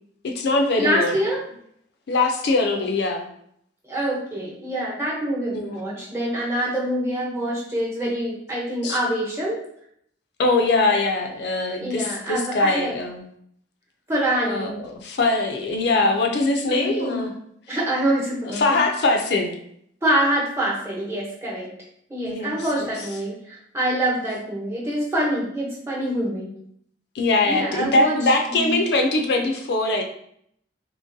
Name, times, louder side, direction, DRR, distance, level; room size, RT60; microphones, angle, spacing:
voice 1, 0.2-1.2 2.1-3.3 5.5-5.8 8.8-9.0 10.4-13.2 14.4-17.3 17.7-17.8 18.4-19.5 22.2-22.9 27.1-30.0, left 2 dB, 60° left, 4 dB, 0.4 m, -22 dB
voice 2, 0.8-1.4 3.8-9.6 11.8-12.9 14.1-14.8 16.7-17.2 17.7-18.8 20.0-21.7 22.1-26.5 27.5-28.2 28.5-28.8, right 1 dB, 15° right, -5 dB, 1.0 m, -25 dB
3.7 x 3.0 x 2.6 m, 0.70 s
head